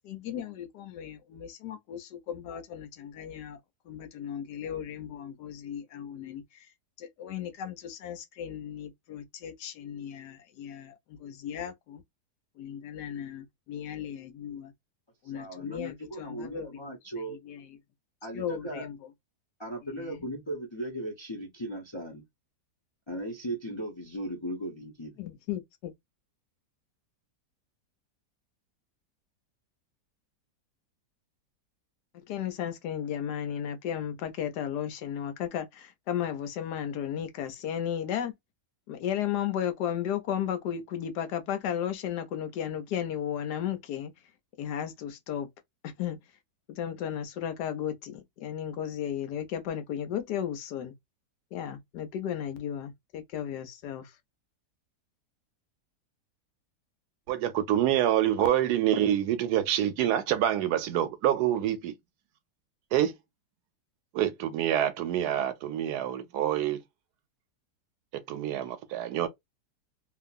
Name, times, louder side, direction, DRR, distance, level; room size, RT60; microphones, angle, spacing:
voice 1, 0.1-3.6 3.9-6.7 7.0-12.0 12.6-14.7 15.2-16.9 17.3-17.8 18.3-19.0 19.9-20.2 25.2-25.9 32.1-38.3 38.9-44.1 44.6-45.5 45.8-46.2 46.7-50.9 51.5-54.1, left 9 dB, 75° left, 1.2 m, -35 dB
voice 2, 15.3-17.4 18.2-18.9 19.6-22.3 23.1-25.2, right 1 dB, 35° left, 0.4 m, -37 dB
voice 3, 57.3-61.9 62.9-63.2 64.1-66.8 68.3-69.3, right 11 dB, 75° right, 1.1 m, -26 dB
2.9 x 2.5 x 2.4 m
omnidirectional pair, 1.8 m